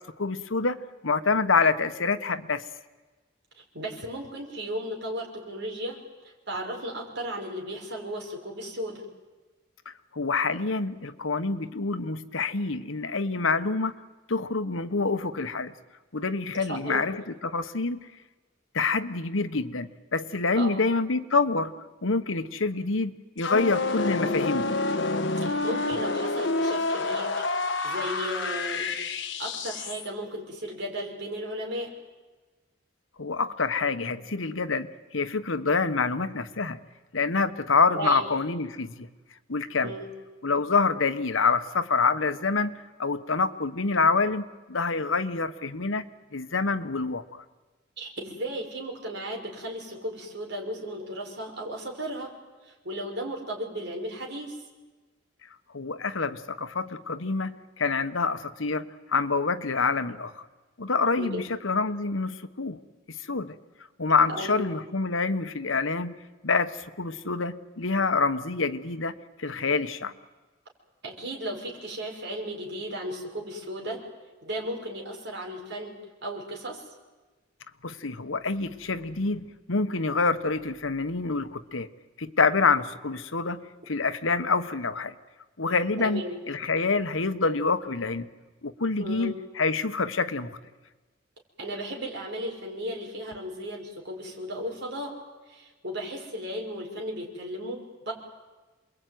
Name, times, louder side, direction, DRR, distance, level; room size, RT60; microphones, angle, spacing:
voice 1, 0.2-0.8 1.0-2.6 9.8-14.0 14.3-15.7 16.1-18.0 18.7-21.7 22.0-24.7 33.2-36.8 37.1-39.1 39.5-39.9 40.4-46.0 46.3-47.4 55.7-60.4 60.8-62.8 63.1-63.5 64.0-66.2 66.4-70.1 77.8-81.9 82.2-85.1 85.6-86.2 86.5-88.3 88.6-90.6, left 4 dB, 90° left, 11 dB, 1.3 m, -27 dB
voice 2, 3.7-6.0 6.2-9.1 16.6-17.0 20.6-20.9 25.4-27.3 27.8-31.9 37.9-38.3 39.8-40.1 48.0-52.3 52.6-54.6 61.2-61.4 64.3-64.6 71.0-74.0 74.4-75.9 76.2-76.8 86.0-86.4 89.0-89.4 91.6-95.1 95.5-98.1, equal, 60° right, 0 dB, 6.0 m, -35 dB
sound 1, 23.4-30.1, left 3 dB, 70° left, 1.4 m, -28 dB
28.0 x 22.0 x 9.5 m, 1.2 s
head